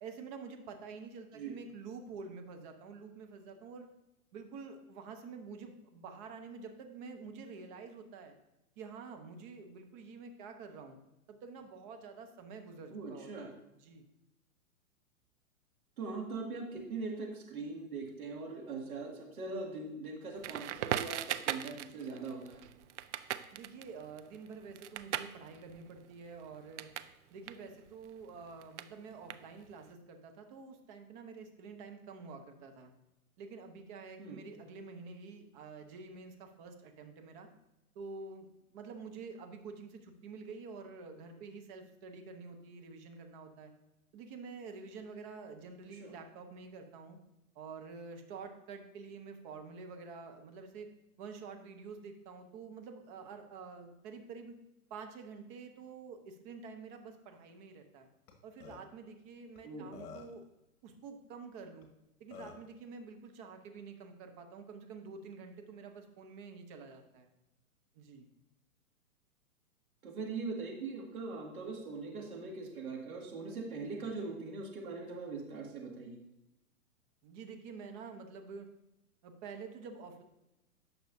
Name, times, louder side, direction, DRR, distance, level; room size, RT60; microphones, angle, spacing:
voice 1, 0.0-3.9 4.3-8.3 8.8-11.0 11.3-14.1 23.5-26.9 27.3-32.9 33.4-37.5 37.9-38.5 38.7-43.7 44.1-47.2 47.5-50.9 51.2-54.6 54.9-58.1 58.4-60.4 60.8-61.9 62.2-67.3 67.9-68.3 77.2-78.7 79.2-80.2, right 5 dB, 30° right, 5 dB, 1.0 m, -48 dB
voice 2, 12.9-13.5 16.0-22.6 34.2-34.4 46.0-46.1 59.6-59.9 70.0-76.2, right 3 dB, 70° right, -1 dB, 2.2 m, -41 dB
Crackle, 20.4-27.1 27.4-29.8, right 11 dB, 55° right, 0.5 m, -40 dB
Burping eructation, 58.3-58.4 58.6-58.8 59.6-59.7 59.9-60.4 61.8-61.9 62.3-62.7, left 5 dB, 45° left, 1.5 m, -48 dB
10.5 x 6.0 x 2.7 m, 0.92 s
hypercardioid pair, 125°, 45 cm